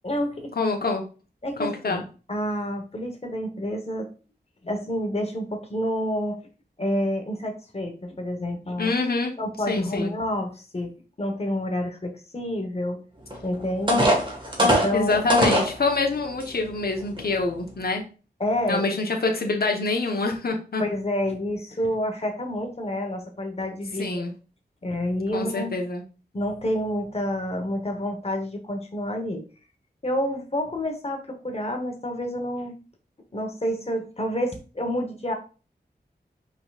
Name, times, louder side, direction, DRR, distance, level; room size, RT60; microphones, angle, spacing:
voice 1, 0.0-0.5 1.4-2.0 2.3-4.1 4.6-6.4 6.8-8.9 9.4-10.9 11.2-13.0 13.4-14.1 14.6-15.2 18.4-18.9 20.8-24.2 24.8-25.7 26.3-29.4 30.0-32.7 33.3-35.3, left 1 dB, 35° left, 4 dB, 1.1 m, -28 dB
voice 2, 0.6-1.0 1.6-2.0 8.8-9.3 9.7-10.1 14.9-18.0 18.7-20.8 24.0-24.3 25.3-26.0, left 3 dB, 65° left, 2 dB, 1.0 m, -26 dB
sound 1, 13.3-13.4 13.9-15.7 16.4-16.5 17.0-17.2, equal, 30° right, 1.5 m, -20 dB
5.4 x 3.9 x 2.4 m, 0.35 s
wide cardioid pair, 75°, 17 cm